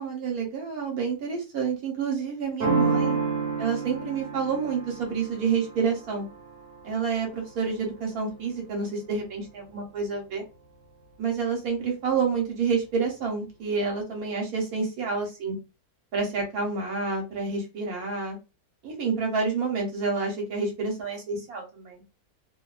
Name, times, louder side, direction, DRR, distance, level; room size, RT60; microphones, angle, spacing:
voice 1, 0.0-3.2 3.6-6.3 6.8-10.4 11.2-15.6 16.1-18.4 18.8-22.0, right 5 dB, 65° right, 1 dB, 1.2 m, -28 dB
sound 1, 2.6-8.1, right 4 dB, 40° right, 1.1 m, -30 dB
2.9 x 2.2 x 2.3 m, 0.29 s
omnidirectional pair, 1.8 m